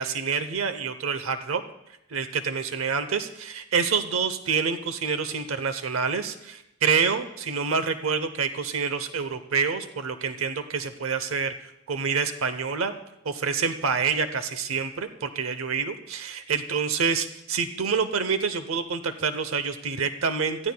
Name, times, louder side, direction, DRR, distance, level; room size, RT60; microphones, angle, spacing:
voice 1, 0.0-1.6 2.1-11.5 11.9-12.9 13.2-20.7, right 5 dB, 80° right, 10 dB, 0.8 m, -27 dB
23.5 x 15.5 x 2.3 m, 0.85 s
head